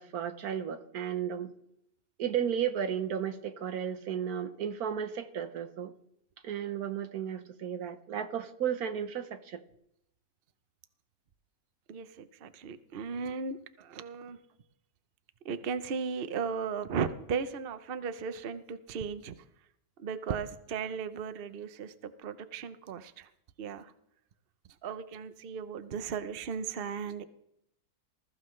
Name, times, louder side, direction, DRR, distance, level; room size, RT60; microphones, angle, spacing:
voice 1, 0.0-1.5 2.2-5.9 6.4-9.6, right 8 dB, 75° right, 1.4 m, -34 dB
voice 2, 11.9-14.4 15.4-19.4 20.0-23.3 23.6-23.9 24.8-27.3, right 6 dB, 45° right, 0.8 m, -36 dB
21.0 x 14.0 x 3.2 m
omnidirectional pair, 1.6 m